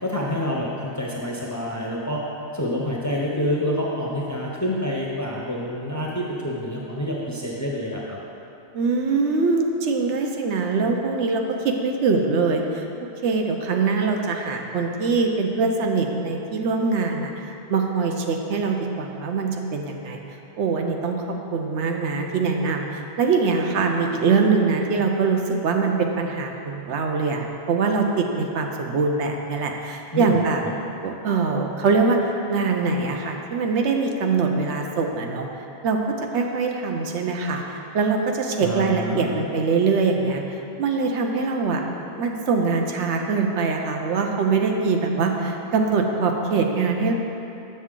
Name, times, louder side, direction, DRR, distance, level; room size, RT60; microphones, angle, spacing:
voice 1, 0.0-2.2 2.5-8.2 30.1-30.3 30.6-30.7 38.6-39.4, equal, 20° left, -3 dB, 0.6 m, -27 dB
voice 2, 8.7-12.8 13.2-17.3 17.7-20.2 20.6-30.6 31.0-35.5 35.8-36.0 36.3-40.4 40.8-41.8 42.2-47.1, right 4 dB, 80° right, 2 dB, 0.9 m, -23 dB
7.1 x 6.5 x 3.7 m, 2.9 s
omnidirectional pair, 1.2 m